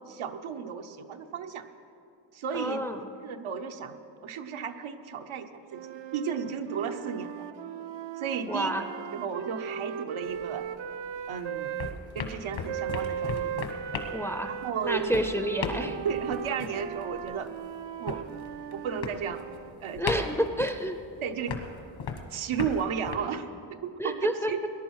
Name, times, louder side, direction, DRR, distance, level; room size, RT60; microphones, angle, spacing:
voice 1, 0.1-1.6 2.3-2.8 3.2-7.5 8.2-8.8 9.1-10.7 11.3-11.8 12.1-13.5 14.4-15.1 15.8-17.5 18.0-18.2 18.7-19.5 19.8-20.2 21.2-21.6 22.3-24.6, right 7 dB, 85° right, 7 dB, 0.9 m, -34 dB
voice 2, 2.5-3.1 8.5-8.8 14.1-14.5 14.8-16.0 20.0-21.0 24.0-24.7, equal, 5° left, 8 dB, 0.4 m, -30 dB
sound 1, 5.7-12.0 12.7-19.8, right 9 dB, 65° right, 0.5 m, -37 dB
sound 2, 10.2-11.3 11.6-23.2, left 5 dB, 70° left, 1.3 m, -38 dB
19.0 x 11.0 x 4.7 m, 2.6 s
wide cardioid pair, 165°, 47 cm